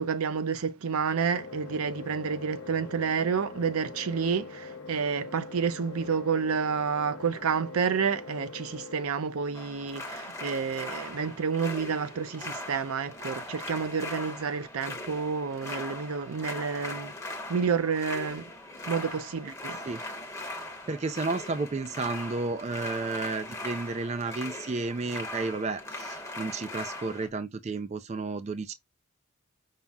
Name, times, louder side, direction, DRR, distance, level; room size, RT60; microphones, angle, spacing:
voice 1, 0.0-17.1 17.5-18.4 18.9-19.8, right 6 dB, 80° right, 0.5 m, -29 dB
sound 1, 1.3-9.1, left 4 dB, 60° left, 0.7 m, -43 dB
sound 2, 9.5-27.3, left 2 dB, 15° left, 0.9 m, -40 dB
voice 2, 20.3-28.7, right 3 dB, 30° right, 0.3 m, -32 dB
5.6 x 2.0 x 3.5 m
head